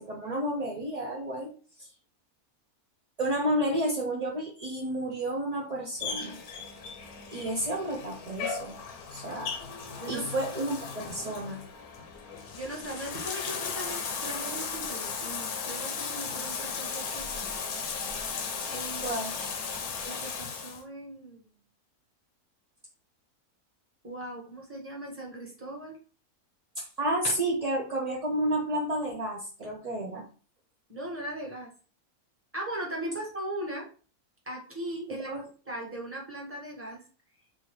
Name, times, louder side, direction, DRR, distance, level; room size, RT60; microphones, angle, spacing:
voice 1, 0.0-1.5 1.8-1.9 3.2-6.4 7.3-8.8 9.1-9.5 10.1-11.6 19.0-19.3 26.8-30.2 35.1-35.4, right 1 dB, 50° right, -2 dB, 0.4 m, -31 dB
Bathtub (filling or washing), 6.0-20.8, left 5 dB, 75° left, 1.2 m, -36 dB
voice 2, 12.5-17.6 18.7-19.2 20.0-21.4 24.0-26.0 30.9-31.7 32.5-33.9 34.4-35.3 35.7-37.0, right 1 dB, 10° right, -2 dB, 1.0 m, -39 dB
4.1 x 2.5 x 3.0 m, 0.38 s
omnidirectional pair, 1.6 m